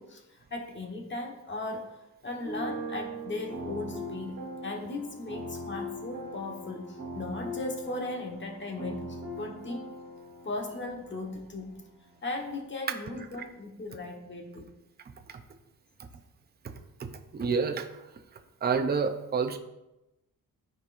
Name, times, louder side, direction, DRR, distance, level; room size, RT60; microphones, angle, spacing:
voice 1, 0.0-9.9 10.4-11.8 12.2-14.7, left 2 dB, 30° left, 1 dB, 1.3 m, -37 dB
sound 1, 2.4-12.6, right 1 dB, 60° right, 2.2 m, -41 dB
voice 2, 17.3-18.1 18.6-19.6, right 5 dB, 25° right, 6 dB, 0.6 m, -28 dB
13.0 x 4.5 x 2.5 m, 0.95 s
wide cardioid pair, 130°, 36 cm